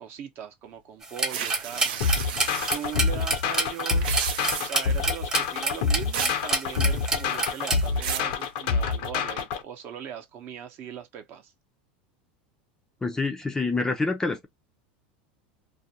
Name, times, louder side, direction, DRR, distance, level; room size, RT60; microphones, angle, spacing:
voice 1, 0.0-2.1 2.7-4.3 4.6-11.5, right 9 dB, 45° right, 0.7 m, -39 dB
sound 1, 1.0-7.8, right 3 dB, 15° right, 0.8 m, -28 dB
sound 2, 1.3-2.9 3.9-4.9 6.1-6.4 6.8-7.3 7.7-8.3, right 8 dB, 85° right, 0.6 m, -33 dB
sound 3, 2.0-9.6, left 5 dB, 70° left, 0.6 m, -27 dB
voice 2, 13.0-14.5, left 3 dB, 10° left, 0.5 m, -27 dB
2.4 x 2.2 x 2.7 m
supercardioid pair, 125°, 5 cm